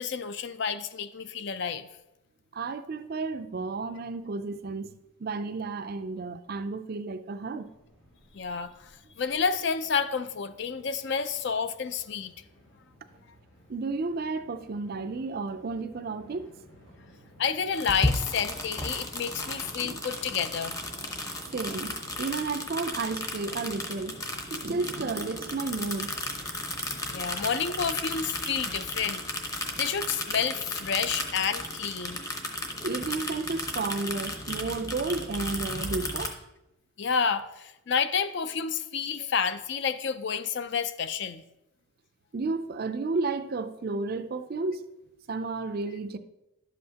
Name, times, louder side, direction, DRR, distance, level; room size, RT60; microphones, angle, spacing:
voice 1, 0.0-1.9 8.3-8.9 9.2-12.3 17.4-20.8 26.9-29.2 29.8-32.2 37.0-41.4, left 6 dB, 55° left, 0.4 m, -30 dB
voice 2, 2.5-4.9 5.2-7.7 13.7-16.5 19.8-20.0 21.5-24.2 24.5-26.1 32.8-36.3 42.3-44.9 45.3-46.2, right 3 dB, 45° right, 0.4 m, -32 dB
Train, 7.6-27.5, equal, 90° left, 3.3 m, -55 dB
sound 1, 17.7-36.3, left 1 dB, 15° left, 0.8 m, -34 dB
11.5 x 7.6 x 2.8 m
head